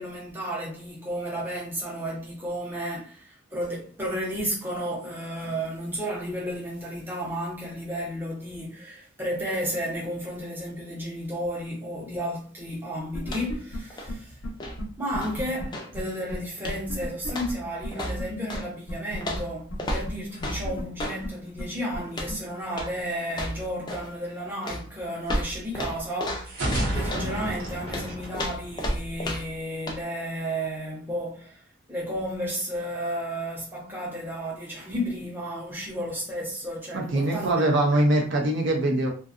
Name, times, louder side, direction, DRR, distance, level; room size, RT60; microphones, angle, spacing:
voice 1, 0.0-14.4 15.0-26.6 26.9-38.0, equal, 10° right, 0.7 m, -33 dB
sound 1, 13.1-13.8 14.1-14.2 14.4-14.5 14.8-14.9 15.1-15.7 16.0-16.1 16.3-16.4 16.7-17.5 17.8-17.9 18.2-18.3 18.5-18.6 18.9-19.4 19.7-19.8 20.1-20.2 20.4-21.3 21.6-21.7 21.9-22.0 22.3-22.4, left 1 dB, 90° left, 0.7 m, -33 dB
sound 2, 13.2-13.7 13.9-16.0 16.6-16.9 17.3-18.7 19.2-21.2 22.1-22.4 22.7-23.0 23.3-24.1 24.6-27.3 27.9-29.6 29.9-30.0, equal, 20° left, 0.4 m, -33 dB
sound 3, 26.5-29.3, right 1 dB, 80° right, 0.9 m, -30 dB
voice 2, 36.9-39.1, right 1 dB, 60° right, 0.5 m, -23 dB
2.5 x 2.3 x 2.4 m
head